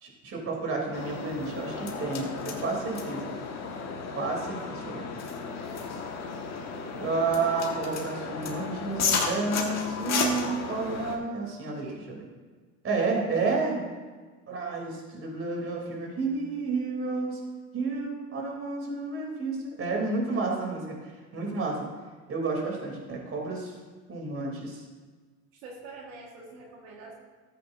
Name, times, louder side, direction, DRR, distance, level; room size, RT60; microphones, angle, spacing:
voice 1, 0.0-3.3 4.2-5.0 7.0-12.2 12.8-13.8 14.5-17.4 17.7-21.9 22.3-23.7 24.1-24.8, right 3 dB, 35° right, -1 dB, 3.3 m, -31 dB
sound 1, 0.9-11.2, left 5 dB, 40° left, 1.7 m, -33 dB
voice 2, 25.6-27.1, right 3 dB, 80° right, -2 dB, 1.8 m, -45 dB
14.0 x 8.4 x 2.7 m, 1.4 s
supercardioid pair, 100°, 39 cm